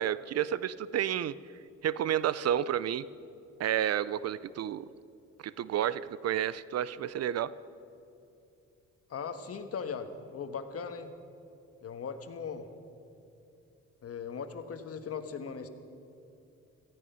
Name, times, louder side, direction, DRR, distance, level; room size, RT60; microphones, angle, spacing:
voice 1, 0.0-1.4 1.8-3.0 3.6-4.8 5.4-7.5, right 10 dB, 55° right, 17 dB, 0.5 m, -30 dB
voice 2, 9.1-11.1 11.8-12.7 14.0-15.7, left 6 dB, 50° left, 8 dB, 1.5 m, -39 dB
17.0 x 14.5 x 5.6 m, 2.7 s
cardioid pair, 90°, 30 cm